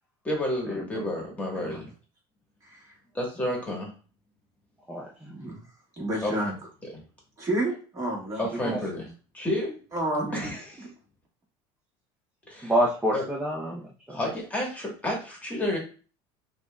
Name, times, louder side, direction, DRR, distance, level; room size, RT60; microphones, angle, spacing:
voice 1, 0.2-1.9 3.1-3.9 6.2-6.3 8.4-9.1 9.3-9.7 10.3-10.8 12.5-12.7 13.1-13.2 14.1-15.8, left 1 dB, 10° left, -1 dB, 1.4 m, -30 dB
voice 2, 5.2-5.6 6.0-6.5 7.4-8.6 9.9-10.5, right 1 dB, 30° right, -2 dB, 1.8 m, -30 dB
voice 3, 12.6-14.2, equal, 10° right, -3 dB, 0.7 m, -28 dB
5.9 x 2.5 x 2.3 m, 0.38 s
cardioid pair, 140°, 12 cm